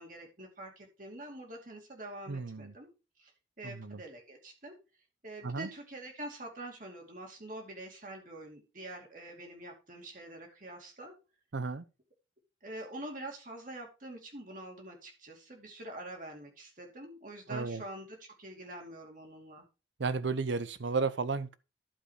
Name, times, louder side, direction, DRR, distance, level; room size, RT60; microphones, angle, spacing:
voice 1, 0.0-2.9 3.2-3.3 3.6-4.8 5.2-11.1 12.6-19.7, right 1 dB, 45° right, 2.6 m, -45 dB
voice 2, 2.3-2.7 3.6-4.0 5.4-5.7 11.5-11.8 17.5-17.8 20.0-21.5, right 4 dB, 75° right, 0.7 m, -33 dB
11.5 x 5.1 x 4.8 m
head